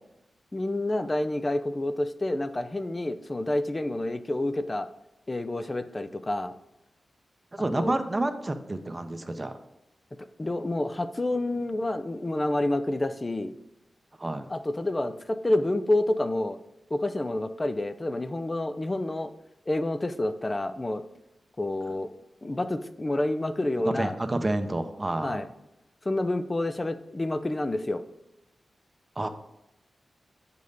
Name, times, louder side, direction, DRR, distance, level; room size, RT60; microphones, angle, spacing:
voice 1, 0.5-4.9 5.3-6.5 7.6-7.9 10.4-13.5 14.5-16.6 16.9-19.3 19.7-21.0 21.6-22.1 22.4-24.2 25.2-25.5 26.1-28.0, left 1 dB, 25° left, 10 dB, 0.6 m, -28 dB
voice 2, 7.5-9.6 14.2-14.5 23.8-25.4 29.2-29.3, right 2 dB, 25° right, 8 dB, 0.8 m, -29 dB
7.7 x 5.4 x 4.0 m, 0.88 s
wide cardioid pair, 85°, 0 cm